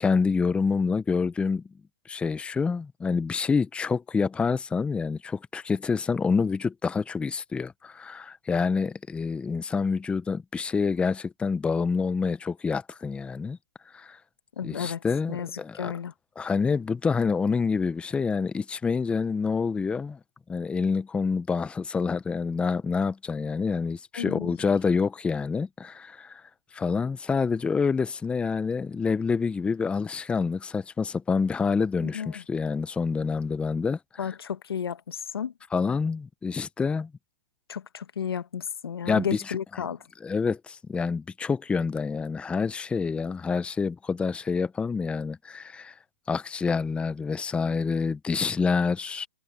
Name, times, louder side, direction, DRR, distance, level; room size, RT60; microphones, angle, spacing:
voice 1, 0.0-1.6 2.1-13.6 13.9-14.2 14.6-15.9 16.4-20.2 20.5-26.4 26.7-34.3 35.7-37.1 39.1-39.6 40.2-45.9 46.3-49.3, left 5 dB, 10° left, 0.8 m, -27 dB
voice 2, 14.6-15.0 15.3-16.1 24.1-24.5 32.0-32.4 34.2-35.5 37.7-40.0, left 8 dB, 80° left, 1.4 m, -33 dB
hypercardioid pair, 135°, 13 cm